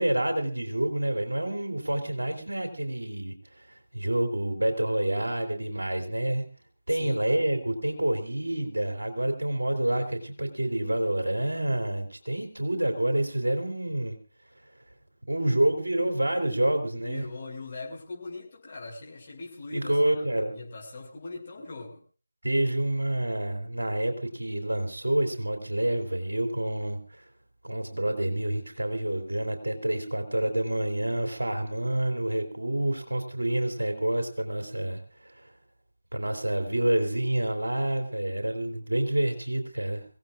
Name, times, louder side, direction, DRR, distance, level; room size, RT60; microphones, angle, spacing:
voice 1, 0.0-3.7 3.9-6.4 6.9-14.2 15.3-17.2 19.7-20.5 22.4-27.2 27.6-35.5 36.1-40.0, right 1 dB, 80° right, 4 dB, 3.1 m, -28 dB
voice 2, 6.9-7.2 17.0-22.0, left 3 dB, 35° left, -3 dB, 6.1 m, -41 dB
25.0 x 17.0 x 2.5 m, 0.37 s
figure-of-eight pair, 160°, 0 cm